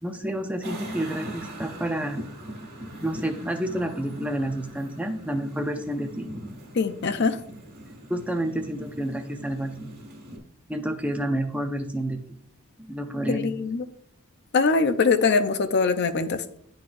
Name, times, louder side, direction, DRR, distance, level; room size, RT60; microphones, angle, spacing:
voice 1, 0.0-2.2 3.0-6.3 8.1-9.9 10.7-12.4 12.9-13.5, right 1 dB, 5° right, 6 dB, 0.4 m, -29 dB
sound 1, 0.6-10.4, right 1 dB, 40° right, 1.8 m, -41 dB
voice 2, 6.7-7.4 13.3-13.9 14.5-16.4, left 4 dB, 50° left, 10 dB, 0.5 m, -22 dB
10.5 x 3.9 x 2.5 m, 0.68 s
head